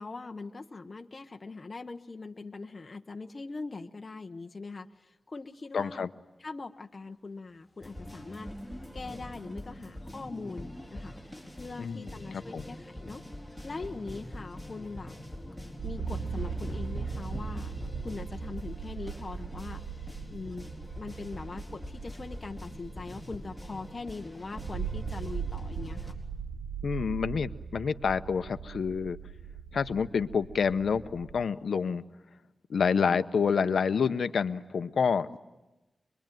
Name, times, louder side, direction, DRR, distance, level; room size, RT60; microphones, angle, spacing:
voice 1, 0.0-4.9 5.3-6.0 6.4-8.5 8.9-11.1 11.6-13.2 13.6-15.1 15.8-17.7 18.0-19.8 20.3-20.7 21.0-26.0 35.3-35.4, left 3 dB, 35° left, 5 dB, 1.0 m, -41 dB
voice 2, 5.7-6.1 11.8-12.7 26.8-29.2 29.7-32.0 32.7-35.4, left 6 dB, 90° left, 11 dB, 0.8 m, -28 dB
sound 1, 7.7-9.3 10.6-10.7 10.9-11.1 11.4-23.5, left 1 dB, 20° left, 1.9 m, -50 dB
sound 2, 7.8-26.1, left 1 dB, 5° right, 4.5 m, -44 dB
sound 3, 15.8-31.4, right 6 dB, 65° right, 1.1 m, -39 dB
26.0 x 22.5 x 9.2 m, 1.1 s
wide cardioid pair, 130°, 0 cm